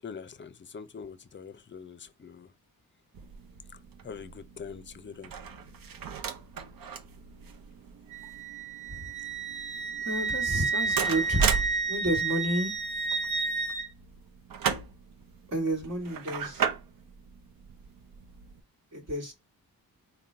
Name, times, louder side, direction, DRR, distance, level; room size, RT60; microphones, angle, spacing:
voice 1, 0.0-2.5 4.0-5.3, left 6 dB, 30° left, 0.5 m, -43 dB
sound 1, 3.1-18.6, right 6 dB, 65° right, 0.7 m, -36 dB
Wind instrument woodwind instrument, 8.1-13.9, right 4 dB, 20° right, 0.6 m, -31 dB
voice 2, 10.0-11.4 11.9-12.7 15.5-16.6 18.9-19.3, right 1 dB, 45° right, 1.5 m, -30 dB
3.7 x 2.3 x 4.2 m
cardioid pair, 80°, 36 cm